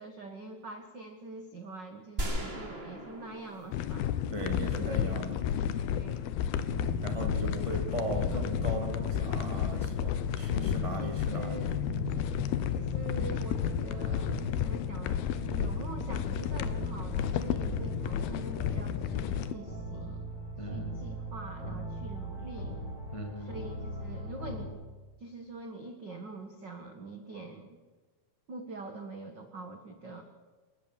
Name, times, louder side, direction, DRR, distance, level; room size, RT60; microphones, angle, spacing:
voice 1, 0.0-4.1 4.8-5.5 5.9-6.8 10.9-11.7 12.7-20.3 20.6-22.8 23.4-24.8 25.2-27.8 28.5-30.2, right 2 dB, 55° right, 6 dB, 1.2 m, -44 dB
sound 1, 2.2-5.1, right 1 dB, 20° right, 2.5 m, -38 dB
sound 2, 3.7-19.5, left 9 dB, 85° left, 2.9 m, -32 dB
voice 2, 4.3-5.4 7.0-11.9 20.6-21.0 23.1-23.6, right 1 dB, 15° left, 4 dB, 1.3 m, -38 dB
sound 3, 6.6-24.7, right 2 dB, 45° left, 6.5 m, -40 dB
29.0 x 14.0 x 7.5 m, 1.3 s
omnidirectional pair, 4.4 m